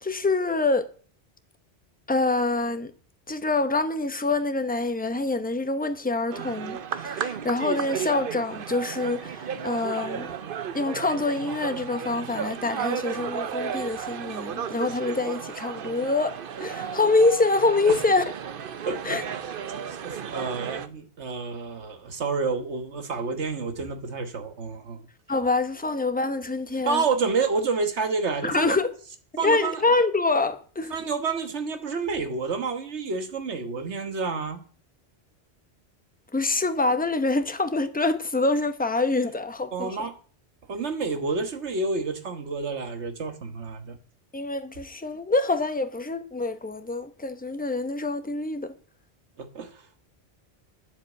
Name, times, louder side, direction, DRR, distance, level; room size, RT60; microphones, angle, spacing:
voice 1, 0.0-0.9 2.1-2.9 3.3-10.3 10.7-18.2 19.0-19.2 25.3-27.0 28.4-28.9 29.3-30.9 36.3-40.1 44.3-48.7, left 3 dB, 10° left, 0.8 m, -25 dB
sound 1, 6.3-20.9, right 7 dB, 55° right, 0.9 m, -34 dB
voice 2, 18.8-19.4 19.9-25.0 26.9-28.8 29.4-29.8 30.9-34.6 39.7-40.1 40.7-44.0 49.4-49.8, right 4 dB, 90° right, 1.7 m, -29 dB
9.7 x 7.4 x 8.2 m
omnidirectional pair, 1.1 m